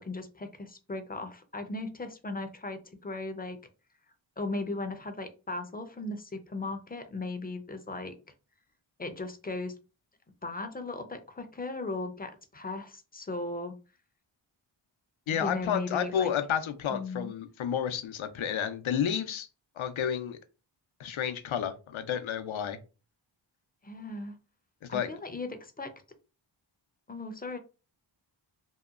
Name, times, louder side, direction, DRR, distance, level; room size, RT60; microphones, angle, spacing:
voice 1, 0.0-3.6 4.4-8.2 9.0-9.7 10.4-13.7 15.3-16.3 16.9-17.3 23.8-24.4 24.9-25.9 27.1-27.6, left 2 dB, 20° left, 0.5 m, -37 dB
voice 2, 15.3-19.5 19.8-20.4 21.0-22.8 24.8-25.1, left 8 dB, 70° left, 0.6 m, -31 dB
2.8 x 2.1 x 2.3 m
cardioid pair, 40°, 49 cm